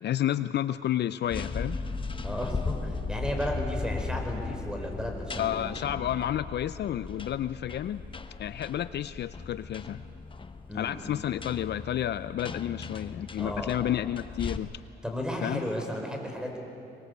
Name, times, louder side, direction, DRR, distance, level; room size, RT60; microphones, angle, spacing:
voice 1, 0.0-1.8 5.4-8.0 8.4-10.0 10.7-14.7 15.4-15.7, left 11 dB, 60° left, 14 dB, 0.5 m, -31 dB
sound 1, 1.2-14.6, left 4 dB, 25° left, 1.1 m, -37 dB
voice 2, 2.2-5.7 10.7-11.0 13.4-13.8 15.0-16.6, equal, 5° right, 2 dB, 4.9 m, -34 dB
24.0 x 21.0 x 8.1 m, 2.7 s
cardioid pair, 90°, 20 cm